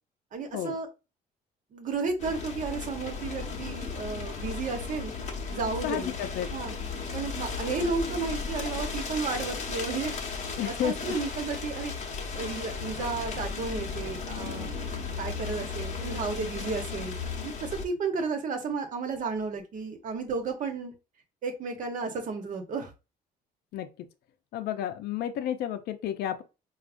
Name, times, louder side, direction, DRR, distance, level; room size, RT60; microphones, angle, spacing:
voice 1, 0.3-0.9 1.7-5.1 5.5-6.1 6.5-6.7 7.1-10.2 10.6-11.9 12.3-14.7 15.2-17.2 17.4-20.9 21.4-22.9, right 4 dB, 50° right, 1.1 m, -33 dB
sound 1, 2.2-17.8, left 5 dB, 45° left, 0.9 m, -35 dB
voice 2, 5.8-6.5 10.6-11.2 23.7-23.9 24.5-26.4, left 10 dB, 70° left, 0.5 m, -31 dB
4.8 x 2.3 x 2.5 m
cardioid pair, 110°, 17 cm